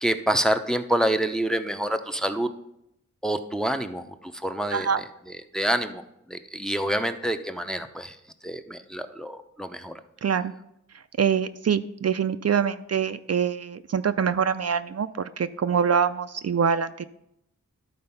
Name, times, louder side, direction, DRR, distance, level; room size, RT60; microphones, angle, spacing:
voice 1, 0.0-2.5 3.2-6.0 6.3-8.2 8.4-10.0, right 1 dB, ahead, 7 dB, 0.6 m, -27 dB
voice 2, 10.2-10.5 11.2-17.0, right 7 dB, 55° right, 11 dB, 0.4 m, -24 dB
12.5 x 4.3 x 5.6 m, 0.78 s
wide cardioid pair, 105°, 31 cm